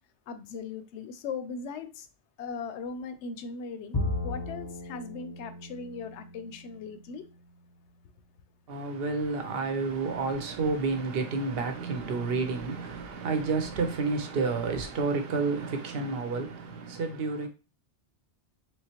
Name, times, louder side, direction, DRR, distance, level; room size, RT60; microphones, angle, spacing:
voice 1, 0.3-2.1 2.4-7.3, left 5 dB, 85° left, 0.9 m, -39 dB
Bowed string instrument, 3.9-7.3, left 2 dB, 25° left, 0.5 m, -36 dB
voice 2, 8.7-17.5, right 4 dB, 65° right, 0.9 m, -30 dB
3.7 x 3.2 x 2.9 m
omnidirectional pair, 1.1 m